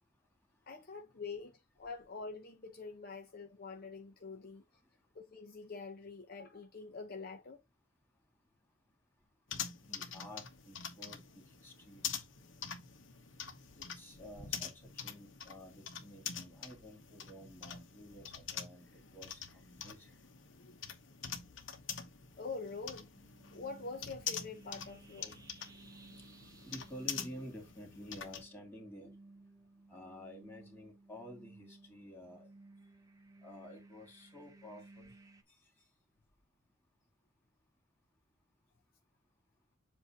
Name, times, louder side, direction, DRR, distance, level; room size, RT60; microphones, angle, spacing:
voice 1, 0.7-4.6 5.1-7.6 20.6-20.8 22.4-23.1 23.5-25.4, left 4 dB, 50° left, 0.7 m, -45 dB
sound 1, 9.5-28.4, left 7 dB, 65° left, 1.1 m, -45 dB
voice 2, 9.8-12.2 13.8-20.2 26.6-29.2 29.9-32.5 33.4-35.1, equal, 10° left, 2.4 m, -51 dB
sound 2, 23.1-35.4, right 2 dB, 15° right, 0.8 m, -58 dB
7.6 x 2.7 x 5.0 m
head